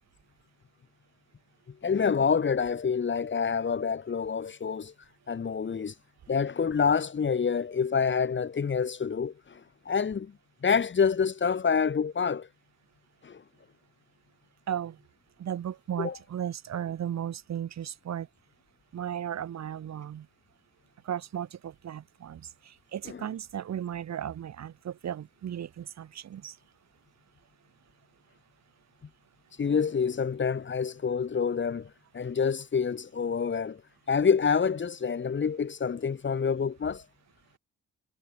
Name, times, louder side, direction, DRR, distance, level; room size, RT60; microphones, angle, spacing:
voice 1, 1.8-4.9 5.3-5.9 6.3-9.6 9.9-10.3 10.6-12.5 13.2-13.4 16.0-16.2 23.1-23.2 29.6-31.9 32.1-33.8 34.1-37.0, left 6 dB, 40° left, 2.6 m, -27 dB
voice 2, 14.7-15.0 15.4-18.3 18.9-20.3 21.0-26.6, right 10 dB, 60° right, 3.9 m, -35 dB
cardioid pair, 90°, 30 cm